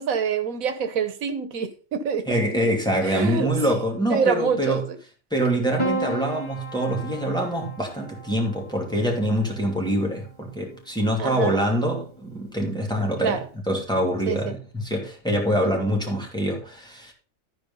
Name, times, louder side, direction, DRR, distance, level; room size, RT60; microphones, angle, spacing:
voice 1, 0.0-2.8 3.0-3.5 4.1-5.0 11.2-11.6 13.2-13.4 14.3-14.4, right 6 dB, 85° right, 1.5 m, -26 dB
voice 2, 2.3-4.8 5.3-13.4 13.7-17.1, equal, 5° left, 2.7 m, -25 dB
Piano, 5.8-10.3 11.5-12.1, right 2 dB, 20° left, 2.0 m, -34 dB
13.0 x 4.8 x 5.5 m
omnidirectional pair, 1.4 m